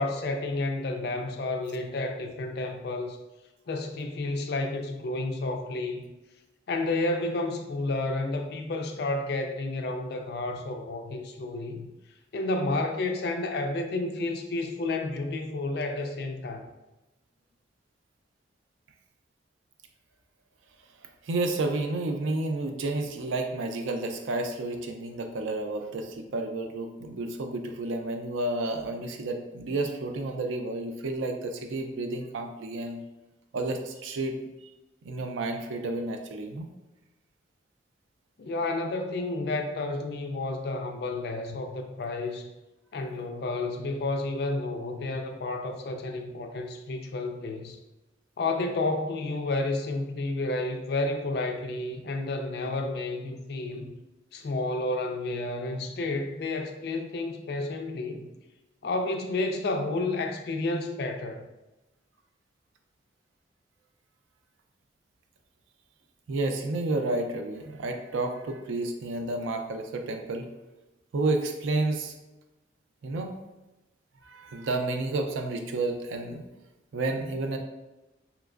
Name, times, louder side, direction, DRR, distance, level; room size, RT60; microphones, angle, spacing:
voice 1, 0.0-3.2 3.7-6.1 6.7-11.9 12.3-16.7 38.4-42.5 42.9-47.8 48.4-53.9 54.3-58.3 58.8-61.4, left 2 dB, 55° left, 5 dB, 0.4 m, -31 dB
voice 2, 21.2-33.0 33.5-34.4 35.0-36.7 66.3-70.5 71.1-72.1 73.0-73.4 74.2-76.5 76.9-77.6, right 2 dB, 85° right, 5 dB, 0.4 m, -31 dB
3.2 x 2.9 x 2.4 m, 1.0 s
head